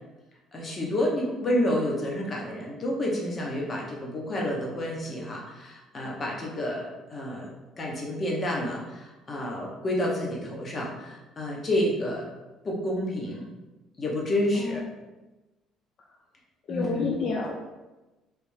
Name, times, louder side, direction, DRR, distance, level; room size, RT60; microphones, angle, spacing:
voice 1, 0.5-12.3 12.6-13.5 14.0-14.8 16.7-17.1, left 1 dB, 30° left, -2 dB, 0.8 m, -29 dB
voice 2, 16.7-17.5, left 4 dB, 45° left, -1 dB, 0.4 m, -29 dB
3.3 x 3.0 x 3.1 m, 1.1 s
cardioid pair, 145°, 0 cm